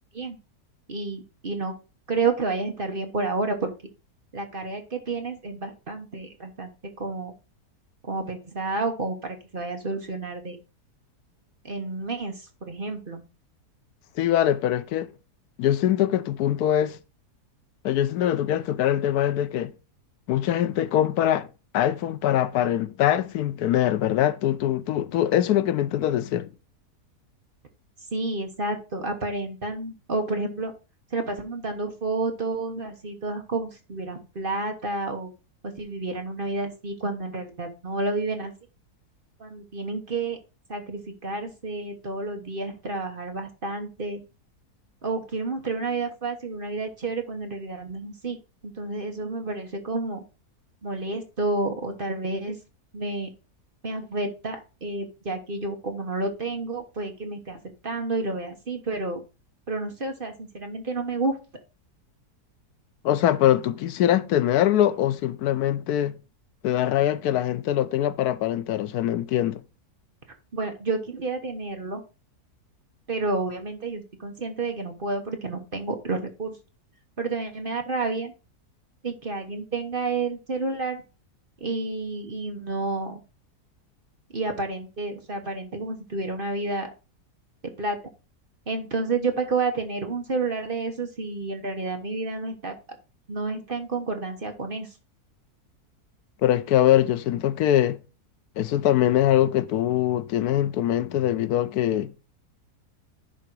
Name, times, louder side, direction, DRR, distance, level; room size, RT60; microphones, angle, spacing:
voice 1, 0.9-1.7 2.1-3.7 4.3-6.7 7.0-7.3 8.0-10.6 11.6-13.2 28.1-30.7 31.1-35.3 35.6-38.5 39.4-40.4 40.7-44.2 45.0-48.4 48.6-50.2 50.8-52.6 52.9-53.3 53.8-59.2 59.7-61.4 70.5-72.0 73.1-76.6 77.2-78.3 79.0-81.0 81.6-83.2 84.3-86.9 87.8-88.0 88.7-92.8 93.3-94.9, right 3 dB, 35° right, 1.2 m, -30 dB
voice 2, 14.2-15.1 15.6-17.0 17.8-19.7 20.3-21.5 21.7-26.5 63.0-66.1 66.6-69.6 96.4-98.0 98.6-102.1, left 11 dB, 80° left, 1.1 m, -23 dB
10.5 x 3.8 x 4.6 m
omnidirectional pair, 1.7 m